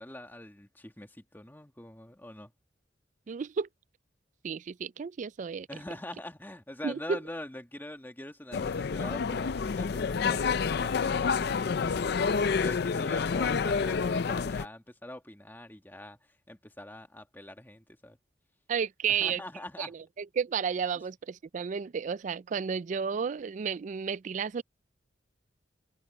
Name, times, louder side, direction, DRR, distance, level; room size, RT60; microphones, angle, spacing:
voice 1, 0.0-2.5 5.7-12.2 12.5-16.2 16.5-18.2 19.1-19.9, left 1 dB, 10° left, 1.7 m, -44 dB
voice 2, 3.3-3.7 4.4-5.7 6.8-7.2 18.7-19.4 19.8-24.6, right 6 dB, 45° right, 0.3 m, -32 dB
sound 1, 8.5-14.7, left 5 dB, 65° left, 0.5 m, -28 dB
head